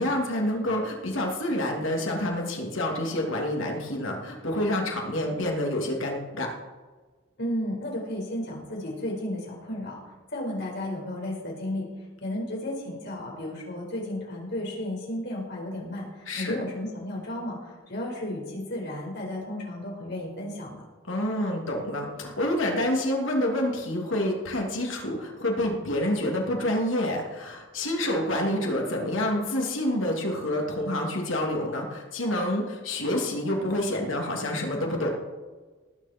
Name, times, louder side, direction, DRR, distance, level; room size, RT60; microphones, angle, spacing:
voice 1, 0.0-6.5 16.3-16.5 21.1-35.1, left 1 dB, 80° left, 0 dB, 2.8 m, -28 dB
voice 2, 7.4-10.0 10.3-11.9 12.2-20.9, left 1 dB, 60° left, -2 dB, 5.1 m, -33 dB
19.0 x 9.7 x 4.5 m, 1.4 s
head